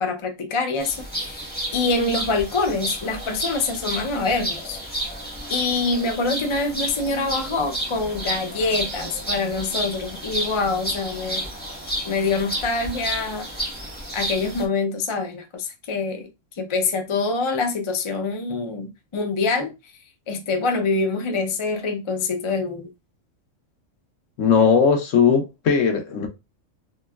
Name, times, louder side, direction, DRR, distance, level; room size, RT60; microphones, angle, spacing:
voice 1, 0.0-4.8 5.5-11.5 12.0-13.5 14.1-16.3 16.6-19.7 20.3-22.9, left 3 dB, 40° left, 0.4 m, -25 dB
sound 1, 0.8-14.6, equal, 10° left, 1.0 m, -31 dB
voice 2, 24.4-26.3, left 6 dB, 75° left, 1.2 m, -18 dB
3.2 x 3.0 x 2.2 m
omnidirectional pair, 1.3 m